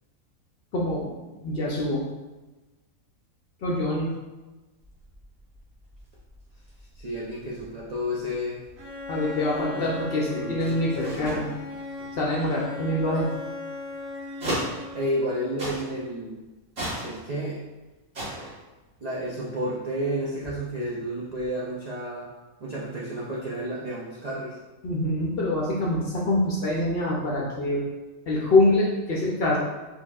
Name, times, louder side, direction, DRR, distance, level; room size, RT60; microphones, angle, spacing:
voice 1, 0.7-2.0 3.6-4.1 9.1-11.5 12.2-13.3 24.8-27.8 28.3-29.6, left 1 dB, 60° left, -3 dB, 0.6 m, -25 dB
sound 1, 4.8-15.3 15.6-16.2 16.6-17.7 18.0-19.9 20.2-21.5, right 1 dB, 50° right, 1.6 m, -38 dB
voice 2, 6.9-8.6 9.7-9.9 10.2-11.5 14.9-16.4 17.0-17.6 18.4-18.5 19.0-22.3 22.6-24.6, equal, 70° right, -6 dB, 0.3 m, -31 dB
Bowed string instrument, 8.8-15.5, left 3 dB, 85° right, 1.4 m, -38 dB
4.3 x 2.8 x 2.3 m, 1.2 s
omnidirectional pair, 1.4 m